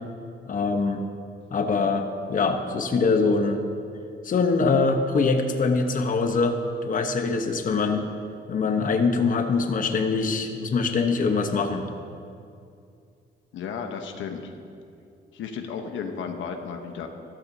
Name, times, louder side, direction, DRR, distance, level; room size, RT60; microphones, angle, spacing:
voice 1, 0.5-1.0 1.5-3.6 4.2-6.6 6.8-8.0 8.5-11.8, left 4 dB, 40° left, 5 dB, 0.9 m, -23 dB
voice 2, 13.5-14.5 15.3-17.1, left 6 dB, 75° left, 5 dB, 1.0 m, -33 dB
14.0 x 12.0 x 2.7 m, 2.5 s
cardioid pair, 90°, 20 cm